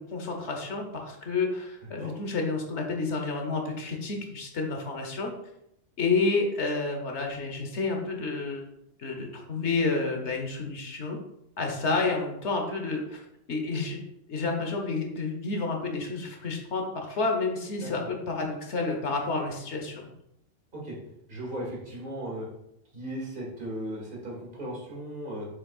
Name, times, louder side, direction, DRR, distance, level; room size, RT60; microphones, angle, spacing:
voice 1, 0.0-5.3 6.0-8.6 9.0-11.2 11.6-13.2 13.5-14.0 14.3-20.1, left 3 dB, 65° left, 2 dB, 1.3 m, -30 dB
voice 2, 21.3-22.5 22.9-25.5, right 1 dB, 40° right, -4 dB, 2.3 m, -36 dB
7.0 x 6.3 x 2.4 m, 0.81 s
omnidirectional pair, 1.3 m